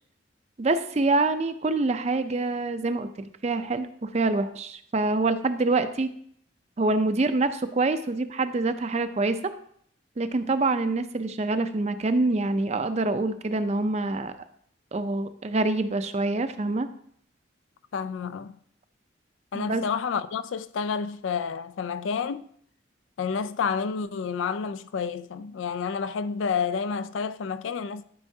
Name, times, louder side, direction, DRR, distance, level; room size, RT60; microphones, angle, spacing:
voice 1, 0.6-6.1 6.8-9.5 10.2-14.3 14.9-16.9 19.5-19.8, right 2 dB, 35° right, 0.5 m, -26 dB
voice 2, 17.9-18.6 19.5-22.5 23.2-28.0, left 6 dB, 90° left, 0.4 m, -29 dB
11.5 x 5.5 x 2.7 m
head